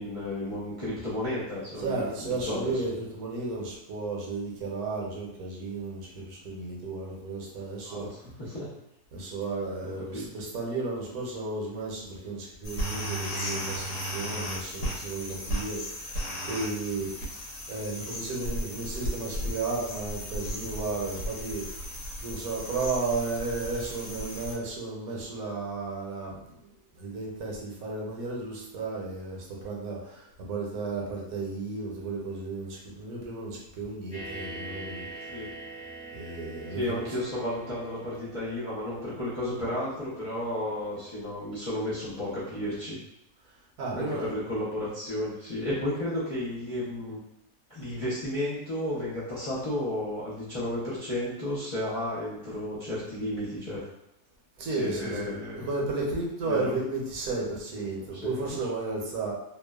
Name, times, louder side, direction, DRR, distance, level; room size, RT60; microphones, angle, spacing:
voice 1, 0.0-2.8 7.8-8.7 9.8-10.3 35.3-35.5 36.7-43.0 43.9-47.2 47.7-53.8 54.7-55.7 56.5-56.7 58.0-58.6, left 1 dB, 50° left, -10 dB, 0.4 m, -33 dB
voice 2, 1.8-8.1 9.1-17.1 17.7-21.6 22.2-26.4 27.0-35.1 36.1-37.0 43.8-44.3 54.6-59.3, right 3 dB, 65° right, -3 dB, 1.0 m, -33 dB
sound 1, 12.6-24.5, equal, 75° left, 1.2 m, -35 dB
sound 2, 34.1-41.6, right 3 dB, 20° left, 0.7 m, -44 dB
2.9 x 2.1 x 2.2 m, 0.84 s
omnidirectional pair, 1.7 m